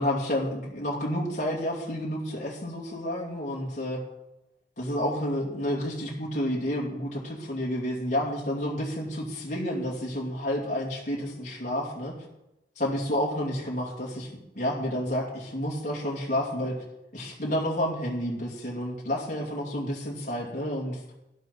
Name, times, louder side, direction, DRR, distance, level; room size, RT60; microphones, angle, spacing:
voice 1, 0.0-4.0 4.8-12.1 12.8-16.8 17.1-21.1, equal, 45° left, -3 dB, 2.6 m, -30 dB
12.0 x 11.5 x 4.1 m, 0.91 s
head